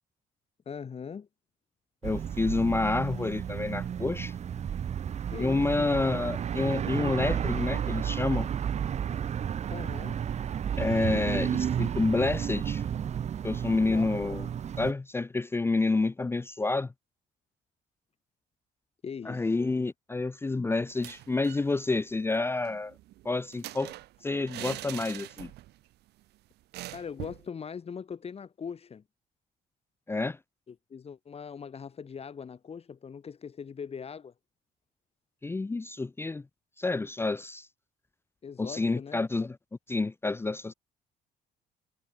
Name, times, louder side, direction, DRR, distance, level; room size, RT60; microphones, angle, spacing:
voice 1, 0.7-1.3 5.3-5.9 9.7-10.2 13.8-14.3 19.0-19.6 26.9-29.0 30.7-34.3 38.4-39.2, left 6 dB, 35° left, 6.3 m, -41 dB
voice 2, 2.0-4.3 5.4-8.5 10.8-12.8 13.4-14.5 14.8-16.9 19.3-22.9 23.2-23.9 24.2-25.5 30.1-30.4 35.4-36.4 36.8-37.7 38.6-39.6 39.9-40.7, left 3 dB, 15° left, 0.6 m, -29 dB
sound 1, 2.0-14.9, right 8 dB, 40° right, 1.0 m, -32 dB
sound 2, 20.9-21.7 22.0-22.1 22.4-25.8 26.1-26.2 26.7-27.5, right 16 dB, 75° right, 1.8 m, -43 dB
cardioid pair, 110°, 17 cm